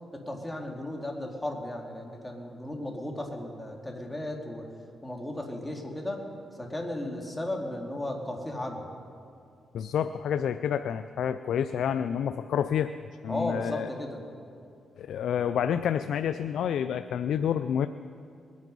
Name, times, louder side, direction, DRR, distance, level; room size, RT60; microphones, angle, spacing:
voice 1, 0.1-4.7 5.0-6.2 6.6-8.9 13.3-14.2, left 1 dB, 15° left, 1 dB, 2.5 m, -35 dB
voice 2, 9.7-12.9 13.2-13.9 15.0-17.9, left 8 dB, 80° left, 11 dB, 0.3 m, -28 dB
21.0 x 9.4 x 5.4 m, 2.5 s
cardioid pair, 70°, 0 cm